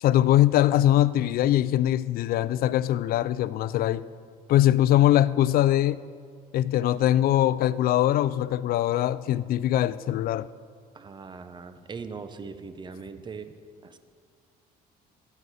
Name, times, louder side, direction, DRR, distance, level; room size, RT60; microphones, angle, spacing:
voice 1, 0.0-4.0 4.5-6.0 6.5-10.5, left 13 dB, 60° left, 0.4 m, -22 dB
voice 2, 10.9-13.5 13.8-14.0, right 5 dB, 25° right, 0.7 m, -40 dB
14.0 x 8.1 x 4.1 m
cardioid pair, 110°, 17 cm